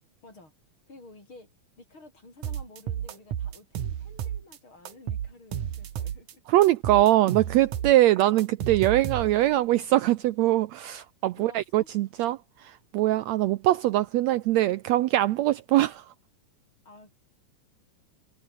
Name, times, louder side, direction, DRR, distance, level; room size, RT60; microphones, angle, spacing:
voice 1, 0.2-0.5 0.9-1.5 1.8-6.4 11.3-11.9 16.8-17.1, left 2 dB, 35° left, 8.2 m, -51 dB
sound 1, 2.4-4.6 4.9-6.3 6.6-9.6, right 10 dB, 65° right, 3.1 m, -32 dB
voice 2, 6.5-16.0, right 15 dB, 85° right, 1.5 m, -23 dB
omnidirectional pair, 3.8 m